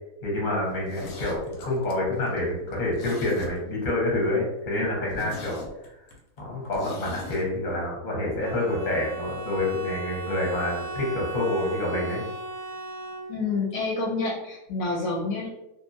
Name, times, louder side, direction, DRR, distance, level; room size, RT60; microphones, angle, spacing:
voice 1, 0.2-5.6 6.4-12.2, left 1 dB, 40° left, -3 dB, 0.8 m, -27 dB
Zipper (clothing), 0.7-3.9 4.2-4.3 4.7-4.8 5.1-7.5 7.7-7.8, left 1 dB, 90° left, 1.2 m, -41 dB
Bowed string instrument, 8.4-13.6, right 2 dB, 25° right, 0.9 m, -37 dB
voice 2, 13.3-15.5, left 3 dB, 70° left, -4 dB, 1.0 m, -28 dB
2.7 x 2.4 x 2.5 m, 0.92 s
omnidirectional pair, 1.7 m